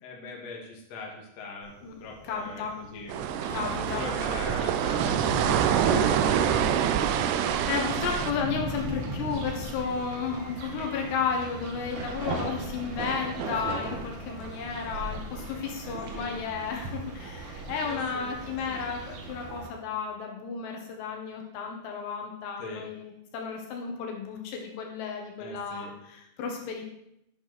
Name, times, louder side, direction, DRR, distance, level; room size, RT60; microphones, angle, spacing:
voice 1, 0.0-1.7 2.0-3.1 3.5-6.6 15.8-16.3 17.8-18.8 22.6-22.8 25.4-25.9, left 3 dB, 45° left, 0 dB, 2.7 m, -41 dB
Thunder, 1.6-19.1, right 1 dB, 40° right, 5.7 m, -41 dB
voice 2, 2.3-2.8 3.5-4.0 7.0-26.8, left 6 dB, 75° left, 1 dB, 3.6 m, -33 dB
sound 1, 3.1-8.3, right 9 dB, 80° right, 2.6 m, -26 dB
sound 2, 3.4-19.7, right 3 dB, 60° right, 2.3 m, -38 dB
11.5 x 11.0 x 4.2 m, 0.78 s
omnidirectional pair, 5.1 m